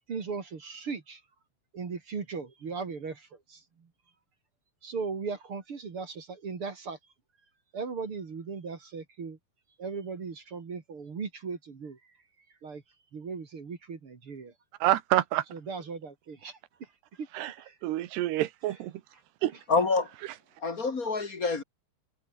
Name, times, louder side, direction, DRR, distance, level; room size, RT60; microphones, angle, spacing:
voice 1, 0.1-1.2 1.7-3.9 4.8-7.0 7.7-9.4 9.8-12.0 12.6-12.8 13.1-14.5 15.5-16.6 17.2-17.3 17.6-17.8, right 5 dB, 35° right, 2.9 m, -38 dB
voice 2, 14.8-15.4 17.3-17.5 17.8-18.9 19.4-19.5, right 15 dB, 80° right, 3.2 m, -27 dB
voice 3, 19.7-20.1 20.6-21.6, left 4 dB, 30° left, 1.7 m, -26 dB
omnidirectional pair, 4.7 m